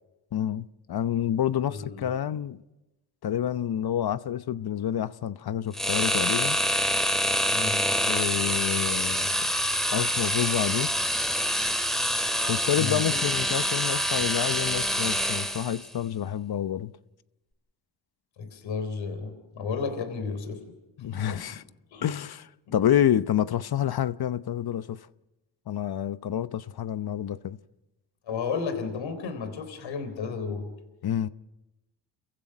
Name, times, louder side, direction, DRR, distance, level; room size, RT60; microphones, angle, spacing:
voice 1, 0.3-2.6 3.2-6.6 8.0-9.5 9.9-10.9 12.5-16.9 21.0-21.6 22.0-25.0 25.7-27.6 31.0-31.3, left 10 dB, 55° left, 0.9 m, -28 dB
voice 2, 1.7-2.1 7.5-7.8 12.8-13.2 18.4-20.6 21.1-21.4 21.9-22.1 22.7-22.8 28.3-30.7, left 5 dB, 75° left, 3.9 m, -33 dB
sound 1, 5.7-15.9, equal, ahead, 2.9 m, -26 dB
29.0 x 15.5 x 6.1 m
cardioid pair, 65°, 45 cm